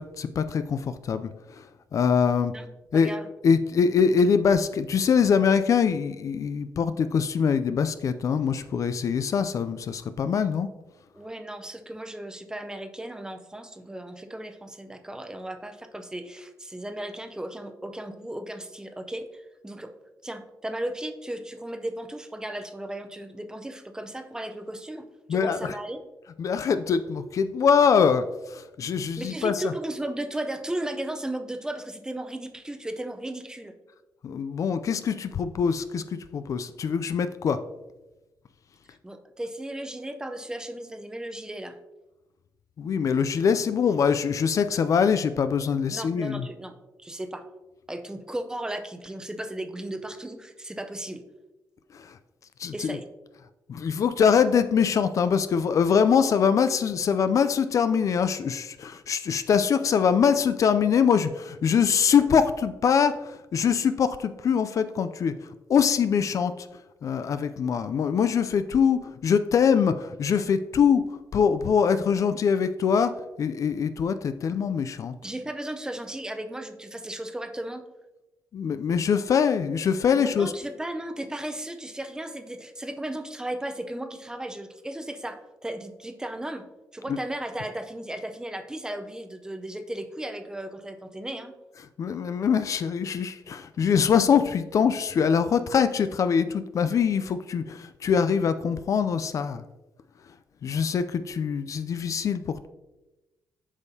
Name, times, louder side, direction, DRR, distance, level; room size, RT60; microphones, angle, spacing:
voice 1, 0.0-1.6 1.9-2.5 2.9-3.1 3.4-10.7 25.3-25.8 26.4-29.7 34.2-36.0 36.3-37.6 42.8-46.5 51.9-52.2 52.6-53.0 53.7-65.4 65.7-66.7 67.0-73.1 73.4-75.1 78.5-80.5 87.1-87.2 92.0-99.6 100.6-102.7, left 6 dB, 50° left, 11 dB, 0.4 m, -23 dB
voice 2, 2.9-3.3 11.1-19.9 20.2-26.0 29.2-33.7 39.0-41.8 45.9-46.7 47.0-47.4 47.9-51.2 52.7-53.0 75.2-77.8 80.2-86.6 86.9-91.5, right 1 dB, 10° right, 7 dB, 0.6 m, -35 dB
8.1 x 5.4 x 2.7 m, 1.0 s
cardioid pair, 105°, 7 cm